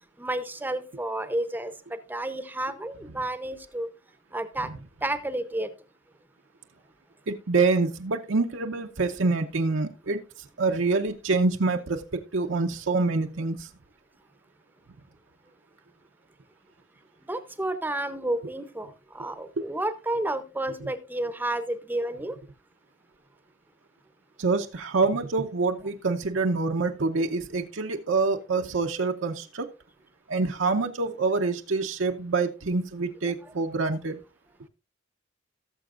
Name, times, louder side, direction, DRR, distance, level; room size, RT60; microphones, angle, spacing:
voice 1, 0.2-3.9 4.3-4.7 5.0-5.7 17.3-22.4 33.4-33.5, right 1 dB, 10° right, 0.7 m, -31 dB
voice 2, 7.3-10.2 10.6-13.7 19.6-19.7 24.4-29.7 30.3-34.2, right 3 dB, 75° right, 0.7 m, -26 dB
18.0 x 6.9 x 2.5 m
head